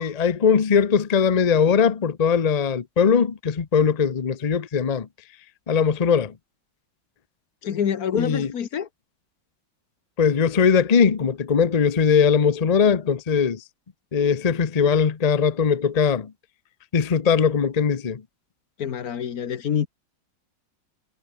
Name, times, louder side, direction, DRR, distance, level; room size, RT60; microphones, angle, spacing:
voice 1, 0.0-5.1 5.7-6.3 8.1-8.5 10.2-13.6 14.1-16.3 16.9-18.2, left 6 dB, 75° left, 0.3 m, -20 dB
voice 2, 7.6-8.9 18.8-19.9, left 8 dB, 50° left, 1.5 m, -26 dB
omnidirectional pair, 2.2 m